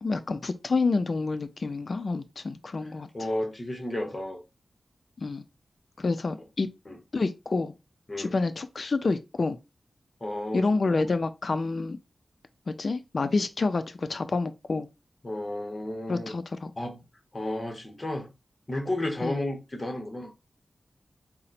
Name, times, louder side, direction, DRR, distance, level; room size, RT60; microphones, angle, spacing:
voice 1, 0.0-3.1 5.2-5.4 6.0-6.7 7.1-7.7 8.2-9.6 10.5-12.0 12.8-14.9 16.1-16.7 19.2-19.4, left 3 dB, 55° left, 0.3 m, -28 dB
voice 2, 3.1-4.4 6.9-7.0 8.1-8.3 10.2-10.7 10.9-11.1 15.2-16.3 16.8-17.0 17.3-18.3 18.7-20.3, left 1 dB, 30° left, 0.9 m, -32 dB
3.9 x 2.0 x 4.1 m
wide cardioid pair, 80°, 0 cm